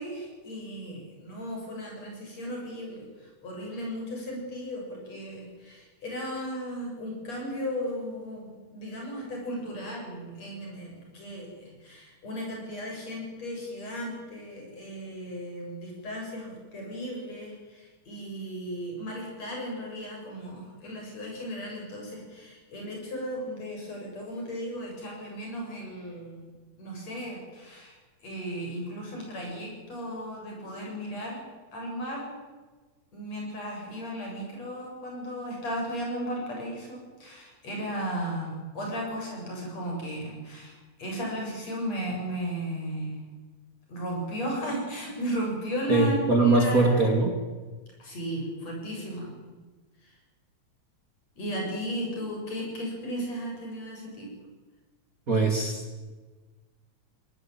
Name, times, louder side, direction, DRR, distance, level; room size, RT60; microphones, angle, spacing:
voice 1, 0.0-26.4 26.8-28.0 28.2-31.4 31.7-32.3 33.1-43.2 43.9-47.2 48.0-49.3 50.0-50.1 51.4-54.3, equal, 60° left, -1 dB, 8.6 m, -35 dB
voice 2, 45.9-47.4 55.3-55.8, right 3 dB, 30° right, 3 dB, 2.8 m, -22 dB
21.5 x 19.0 x 9.1 m, 1.3 s
omnidirectional pair, 3.3 m